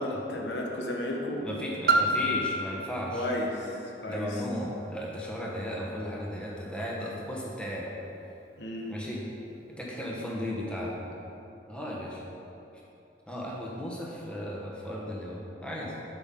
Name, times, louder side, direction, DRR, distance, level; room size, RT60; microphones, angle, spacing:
voice 1, 0.0-1.5 3.1-4.4 8.6-9.0, left 1 dB, 75° left, -1 dB, 1.0 m, -33 dB
voice 2, 1.4-3.2 4.0-7.9 8.9-9.2 9.7-11.0 11.7-12.2 13.3-15.9, equal, 5° left, -4 dB, 1.0 m, -35 dB
Piano, 1.9-7.3 8.0-8.1, right 1 dB, 55° right, 0.5 m, -31 dB
7.9 x 5.7 x 3.7 m, 2.9 s
head